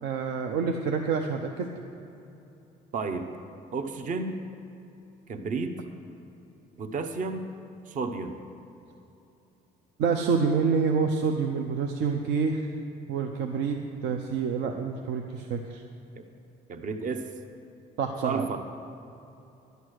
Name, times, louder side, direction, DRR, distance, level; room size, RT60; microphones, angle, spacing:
voice 1, 0.0-1.7 10.0-12.7 13.1-15.8 18.0-18.5, right 5 dB, 85° right, 3 dB, 0.7 m, -27 dB
voice 2, 2.9-3.3 3.7-4.4 5.3-5.8 6.8-7.5 7.9-8.4 16.1-16.2 16.7-17.3 18.2-18.6, right 4 dB, 50° right, 7 dB, 0.9 m, -32 dB
11.0 x 8.2 x 6.4 m, 2.9 s
cardioid pair, 110°, 17 cm